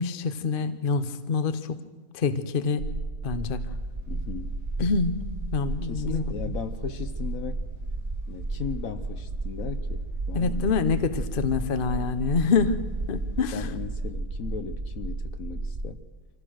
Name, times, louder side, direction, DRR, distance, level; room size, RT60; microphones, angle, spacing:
voice 1, 0.0-1.8 2.1-2.8 3.2-3.7 4.8-6.2 10.3-12.8 13.1-13.7, left 5 dB, 40° left, 10 dB, 1.0 m, -26 dB
sound 1, 2.8-15.9, right 2 dB, 25° right, 0.7 m, -33 dB
sound 2, 3.4-13.8, left 1 dB, 90° left, 6.7 m, -51 dB
voice 2, 4.1-4.6 5.8-7.6 8.3-10.9 12.5-12.8 13.5-16.1, left 7 dB, 65° left, 9 dB, 1.3 m, -37 dB
26.0 x 15.5 x 6.4 m, 1.4 s
omnidirectional pair, 1.7 m